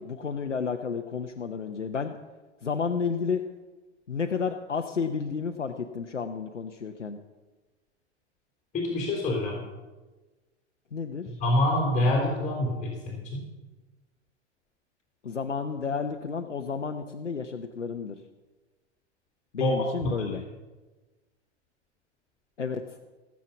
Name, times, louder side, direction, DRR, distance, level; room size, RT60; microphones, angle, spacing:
voice 1, 0.0-2.2 2.6-3.4 4.1-7.2 10.9-11.4 15.2-18.2 19.5-20.4 22.6-22.8, left 5 dB, 85° left, 5 dB, 0.9 m, -31 dB
voice 2, 8.7-9.6 11.3-13.4 19.6-19.9 20.3-20.4, left 1 dB, 20° left, -2 dB, 3.9 m, -26 dB
17.5 x 7.6 x 7.1 m, 1.2 s
figure-of-eight pair, 100°, 35 cm